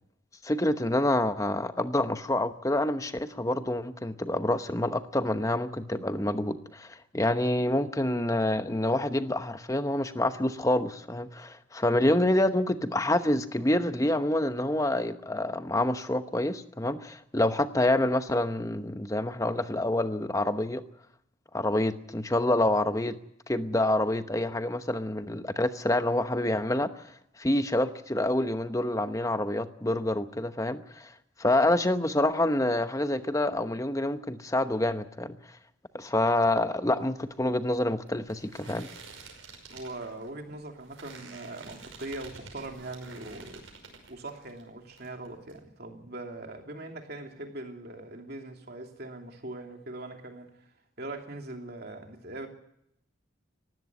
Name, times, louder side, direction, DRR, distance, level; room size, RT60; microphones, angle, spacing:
voice 1, 0.4-20.8 21.5-23.2 23.5-27.1 27.4-31.1 31.4-35.4 35.9-38.9, left 1 dB, 15° left, 0.9 m, -27 dB
sound 1, 36.9-44.6 44.9-45.6, right 4 dB, 85° right, 5.6 m, -49 dB
voice 2, 39.7-43.6 44.1-50.7 51.0-52.5, right 2 dB, 50° right, 2.9 m, -41 dB
19.0 x 15.5 x 9.6 m
head